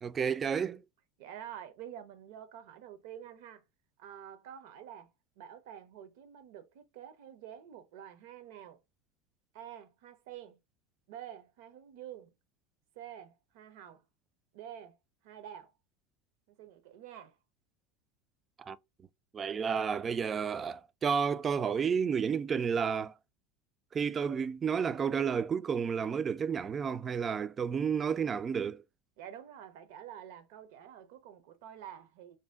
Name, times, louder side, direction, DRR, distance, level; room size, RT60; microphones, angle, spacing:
voice 1, 0.0-0.8 18.6-18.8 19.3-23.1 23.9-28.8, right 6 dB, 30° right, 0.3 m, -31 dB
voice 2, 1.2-3.6 4.0-8.8 9.5-10.6 11.1-12.3 13.0-14.0 14.5-15.0 15.2-15.7 16.5-17.4 29.2-32.4, right 10 dB, 70° right, 0.7 m, -48 dB
2.7 x 2.2 x 3.4 m
hypercardioid pair, 90°, 0 cm